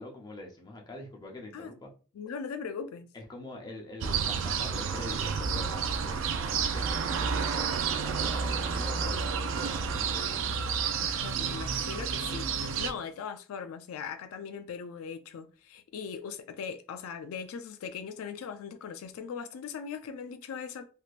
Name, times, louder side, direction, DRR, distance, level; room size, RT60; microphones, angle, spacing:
voice 1, 0.0-1.9 3.1-10.5, left 2 dB, 20° left, 0.6 m, -45 dB
voice 2, 2.1-3.1 11.0-20.9, left 6 dB, 75° left, 0.3 m, -40 dB
sound 1, 4.0-12.9, right 6 dB, 60° right, 0.3 m, -30 dB
3.3 x 2.8 x 2.4 m
head